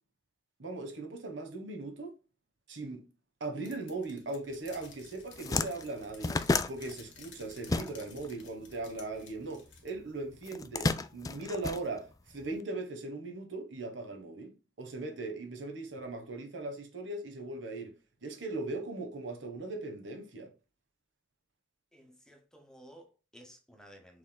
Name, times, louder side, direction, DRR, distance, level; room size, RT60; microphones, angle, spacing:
voice 1, 0.6-2.1 2.7-3.0 3.4-17.9 18.2-20.5, right 2 dB, 80° right, 1.2 m, -39 dB
sound 1, 3.6-9.9, left 6 dB, 85° left, 1.6 m, -55 dB
sound 2, 4.8-4.9 5.2-8.3 8.6-9.8 10.4-12.5, left 3 dB, 20° left, 0.3 m, -32 dB
voice 2, 21.9-24.2, equal, 5° left, 1.0 m, -55 dB
6.3 x 3.5 x 2.2 m
head